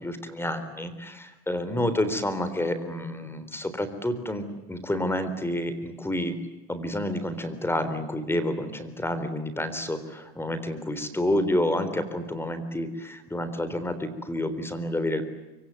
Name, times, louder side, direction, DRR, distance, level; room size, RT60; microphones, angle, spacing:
voice 1, 0.0-6.4 6.7-15.2, left 1 dB, 5° left, 11 dB, 3.7 m, -29 dB
25.0 x 25.0 x 9.2 m, 1.0 s
supercardioid pair, 130°, 32 cm